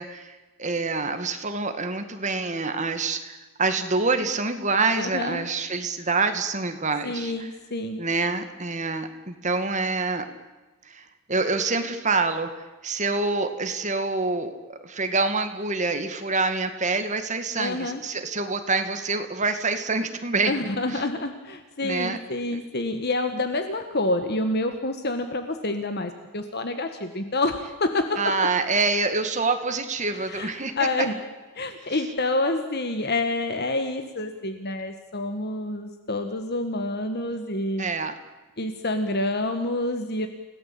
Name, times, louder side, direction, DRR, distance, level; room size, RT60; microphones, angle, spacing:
voice 1, 0.0-7.5 8.0-10.3 10.9-12.5 12.8-20.5 20.9-21.0 21.8-22.2 28.2-30.7 37.8-38.2, right 3 dB, 35° right, 7 dB, 2.3 m, -26 dB
voice 2, 5.0-5.4 7.0-8.0 17.6-18.0 20.5-28.2 30.1-31.1 31.5-37.8 38.6-40.3, left 2 dB, 45° left, 7 dB, 1.6 m, -28 dB
30.0 x 18.0 x 8.7 m, 1.2 s
head